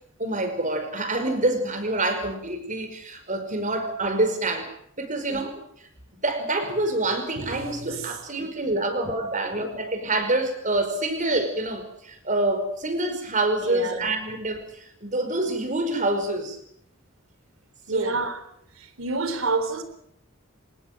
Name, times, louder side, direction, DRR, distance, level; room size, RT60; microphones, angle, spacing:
voice 1, 0.2-4.7 5.0-5.5 6.2-16.6 17.9-18.1, right 2 dB, 40° right, 5.3 m, -26 dB
voice 2, 7.1-8.5 13.6-14.1 17.9-18.4 18.7-19.8, right 3 dB, 90° right, 3.9 m, -30 dB
25.0 x 20.0 x 7.7 m
head